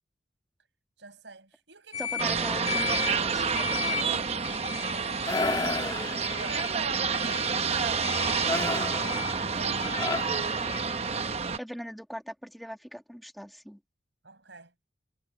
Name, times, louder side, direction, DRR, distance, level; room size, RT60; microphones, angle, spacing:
voice 1, 1.0-2.1 4.0-5.0 5.4-8.1 8.4-9.9 14.2-14.7, right 3 dB, 75° right, 5.8 m, -48 dB
sound 1, 1.9-10.8, left 8 dB, 35° left, 2.3 m, -38 dB
voice 2, 2.2-4.0 11.6-13.8, equal, ahead, 2.0 m, -41 dB
sound 2, 2.2-11.6, right 5 dB, 35° right, 0.9 m, -29 dB
sound 3, 5.2-6.8 8.5-11.1, left 2 dB, 20° left, 2.2 m, -33 dB
head